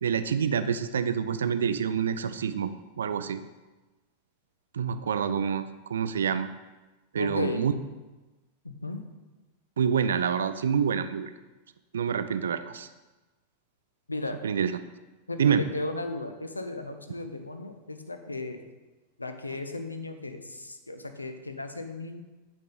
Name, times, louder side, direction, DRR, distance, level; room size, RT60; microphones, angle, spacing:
voice 1, 0.0-2.7 3.0-3.4 4.7-6.5 7.1-7.7 9.8-11.3 11.9-12.9 14.4-14.7 15.4-15.6, right 7 dB, 65° right, 11 dB, 0.3 m, -27 dB
voice 2, 7.2-7.7 8.6-9.0 14.1-14.4 15.3-18.6 19.2-22.2, left 2 dB, 80° left, 7 dB, 0.5 m, -35 dB
8.4 x 3.6 x 3.8 m, 1.2 s
figure-of-eight pair, 90°, 0 cm